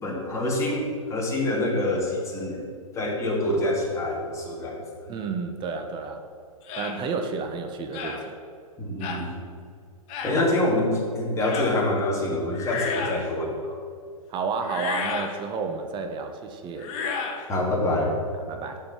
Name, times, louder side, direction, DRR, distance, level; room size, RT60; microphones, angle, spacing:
voice 1, 0.0-2.6 2.9-4.8 8.8-9.4 10.2-13.7 17.5-18.1, left 1 dB, 15° left, -2 dB, 2.5 m, -26 dB
voice 2, 5.1-6.2 6.7-8.3 14.3-16.9 18.5-18.8, right 5 dB, 25° right, 5 dB, 1.1 m, -31 dB
sound 1, 6.7-7.0 7.9-8.2 9.0-9.2 10.1-10.4 11.4-11.7 12.5-13.3 14.6-15.3 16.8-17.4, left 5 dB, 35° left, 1.5 m, -31 dB
12.0 x 5.1 x 7.3 m, 2.3 s
hypercardioid pair, 125°, 18 cm